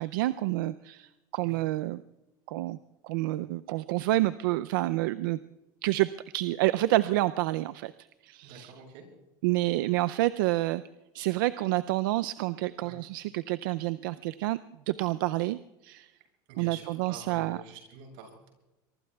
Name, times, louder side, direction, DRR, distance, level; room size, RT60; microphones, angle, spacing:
voice 1, 0.0-2.0 2.5-2.8 3.0-5.4 5.8-6.1 6.3-7.9 8.2-8.7 9.4-10.8 11.1-14.6 14.9-16.1 16.6-17.6, right 17 dB, 90° right, 13 dB, 0.5 m, -28 dB
voice 2, 8.4-9.0 12.8-13.0 16.5-18.5, right 6 dB, 65° right, 2 dB, 7.5 m, -47 dB
24.5 x 23.5 x 2.3 m, 1.0 s
supercardioid pair, 145°, 11 cm